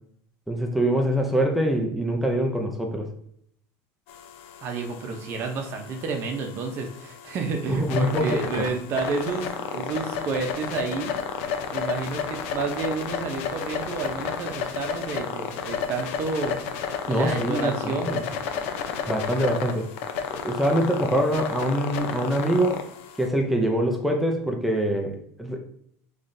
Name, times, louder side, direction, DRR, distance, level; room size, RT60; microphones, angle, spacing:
voice 1, 0.5-3.1 7.8-8.4 17.1-18.2 19.1-19.9 20.3-22.9 23.2-25.6, right 1 dB, ahead, 2 dB, 0.4 m, -24 dB
sound 1, 4.1-23.3, left 7 dB, 85° left, 0.6 m, -32 dB
voice 2, 4.6-11.1 11.7-16.6 17.1-18.3, right 4 dB, 35° right, 4 dB, 0.7 m, -30 dB
5.5 x 3.1 x 2.6 m, 0.69 s
cardioid pair, 175°, 7 cm